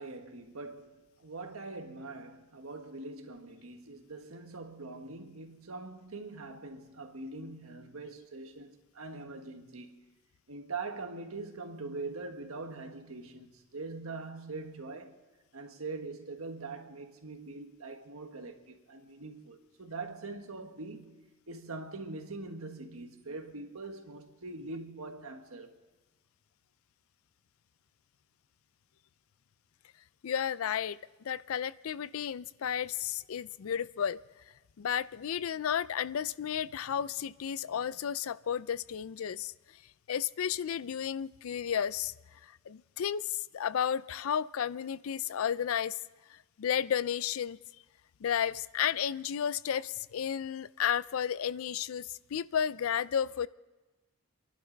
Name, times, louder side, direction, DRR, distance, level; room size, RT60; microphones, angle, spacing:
voice 1, 0.0-10.0 10.5-15.2 15.5-25.8, right 3 dB, 85° right, 1.6 m, -43 dB
voice 2, 30.2-34.2 34.8-39.5 40.1-42.1 42.4-46.0 46.3-47.6 48.2-53.5, left 8 dB, 75° left, 0.4 m, -33 dB
28.5 x 11.5 x 4.0 m
head